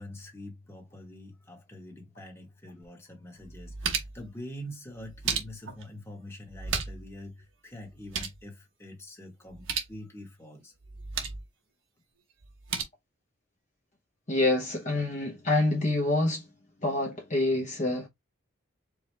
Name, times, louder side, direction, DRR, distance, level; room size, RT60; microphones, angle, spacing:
voice 1, 0.0-10.7, left 1 dB, 10° left, 1.2 m, -45 dB
sound 1, 2.8-2.9 3.4-4.3 5.0-5.8 6.5-7.1 7.4-7.5 7.8-8.4 9.5-10.0 10.8-11.5 12.4-12.8, right 6 dB, 70° right, 1.0 m, -34 dB
voice 2, 14.3-16.5 16.8-18.1, left 2 dB, 35° left, 0.8 m, -26 dB
4.9 x 2.3 x 3.2 m
head